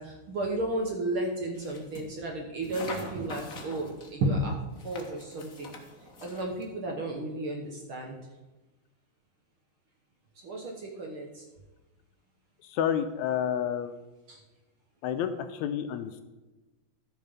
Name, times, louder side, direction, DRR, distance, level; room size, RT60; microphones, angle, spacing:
voice 1, 0.0-4.6 4.8-5.7 6.2-8.2 10.4-11.4 14.3-14.4, right 1 dB, 60° right, 1 dB, 1.5 m, -33 dB
sound 1, 1.5-2.1 2.6-4.1 4.7-6.7, left 2 dB, 45° left, 1.1 m, -44 dB
voice 2, 12.6-13.9 15.0-16.2, left 9 dB, 80° left, 8 dB, 1.8 m, -30 dB
14.0 x 5.6 x 5.2 m, 1.1 s
omnidirectional pair, 3.5 m